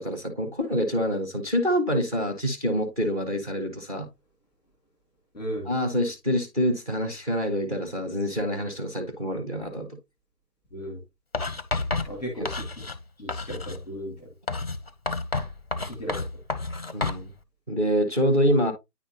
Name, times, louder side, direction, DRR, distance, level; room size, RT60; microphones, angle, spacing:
voice 1, 0.0-4.1 5.7-10.0 16.9-17.3 17.7-18.7, equal, 25° right, 1.0 m, -26 dB
voice 2, 5.3-5.7 10.7-11.0 12.1-12.7 13.2-14.3 15.8-16.2, equal, ahead, 1.4 m, -35 dB
Writing, 11.3-13.0 13.3-13.8 14.5-17.3, left 3 dB, 40° left, 0.6 m, -30 dB
9.5 x 3.5 x 2.8 m
figure-of-eight pair, 150°, 49 cm